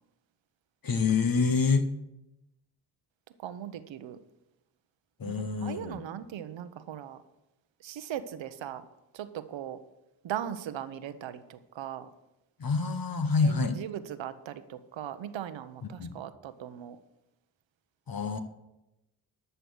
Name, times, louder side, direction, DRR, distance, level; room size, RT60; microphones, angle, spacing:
voice 1, 0.8-1.9 5.2-6.0 12.6-13.8 16.0-16.2 18.1-18.4, left 4 dB, 50° left, 8 dB, 1.3 m, -27 dB
voice 2, 3.4-4.2 5.2-7.2 7.8-8.9 9.1-9.8 10.2-12.1 13.4-17.0, right 10 dB, 75° right, 12 dB, 0.9 m, -39 dB
12.5 x 6.8 x 6.4 m, 0.94 s
supercardioid pair, 45°, 45 cm